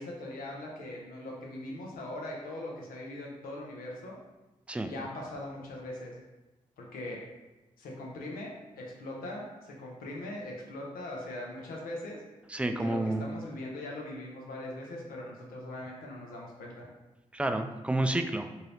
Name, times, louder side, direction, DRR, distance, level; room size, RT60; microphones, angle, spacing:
voice 1, 0.0-4.2 4.8-6.1 6.8-7.2 7.8-12.2 12.8-16.9, left 1 dB, 85° left, -2 dB, 0.7 m, -40 dB
voice 2, 12.5-13.2 17.3-18.5, right 1 dB, 10° right, 7 dB, 0.3 m, -29 dB
2.7 x 2.7 x 3.2 m, 1.1 s
supercardioid pair, 40°, 15 cm